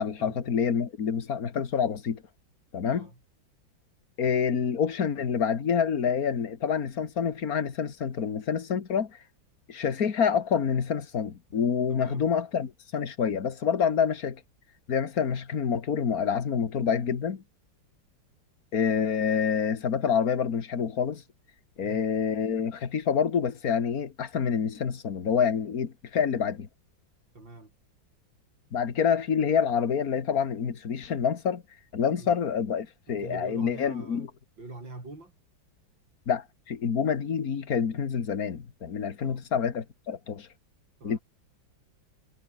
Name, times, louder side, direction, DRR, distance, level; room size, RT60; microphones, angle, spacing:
voice 1, 0.0-2.2 2.7-3.1 4.2-9.2 9.7-14.4 14.9-17.4 18.7-21.2 21.8-26.7 28.7-31.6 31.9-34.3 36.3-40.5 41.0-41.2, left 7 dB, 50° left, 2.2 m, -27 dB
voice 2, 11.9-12.3 21.8-22.0 27.3-27.7 32.2-32.3 33.1-34.3 34.6-35.3 39.2-39.4 41.0-41.2, right 2 dB, 70° right, 7.7 m, -43 dB
omnidirectional pair, 2.1 m